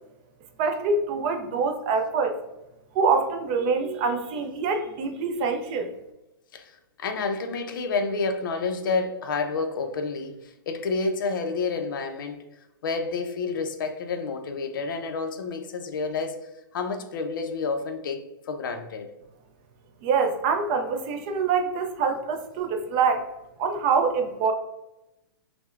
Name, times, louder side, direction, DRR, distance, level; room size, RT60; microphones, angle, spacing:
voice 1, 0.6-2.3 2.9-5.9 20.0-23.2 23.6-24.5, right 5 dB, 25° right, 6 dB, 0.3 m, -25 dB
voice 2, 6.5-12.4 12.8-16.4 16.7-19.1, left 4 dB, 65° left, 6 dB, 0.5 m, -29 dB
5.9 x 2.1 x 2.4 m, 0.93 s
hypercardioid pair, 165°, 12 cm